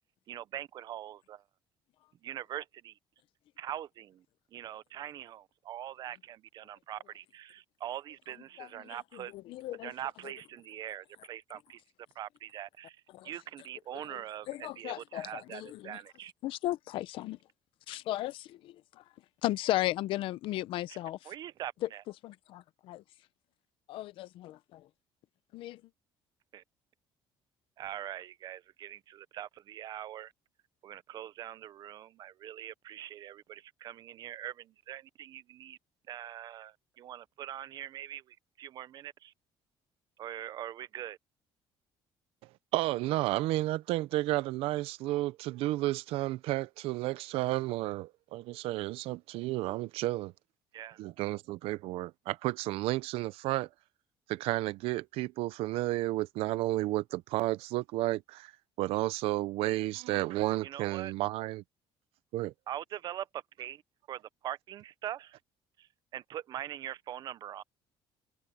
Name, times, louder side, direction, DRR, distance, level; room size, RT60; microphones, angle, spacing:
voice 1, 0.3-1.4 2.2-3.0 3.6-4.3 4.5-9.3 9.7-11.8 12.1-16.3 20.9-21.0 21.2-22.0 26.5-26.6 27.8-30.3 30.8-35.8 36.1-39.3 40.2-41.2 50.7-51.0 60.6-61.1 62.7-63.8 64.1-65.4 65.8-67.6, right 11 dB, 45° right, 0.6 m, -43 dB
voice 2, 9.5-9.9 13.1-13.3 14.5-16.0 16.4-17.4 17.9-19.0 19.4-21.2 22.2-23.0 23.9-24.8 25.5-25.8, left 15 dB, 65° left, 0.7 m, -35 dB
voice 3, 42.7-50.3 51.0-53.7 54.3-58.5 58.8-61.6 62.3-62.5, right 17 dB, 85° right, 0.7 m, -32 dB
cardioid pair, 165°, 10 cm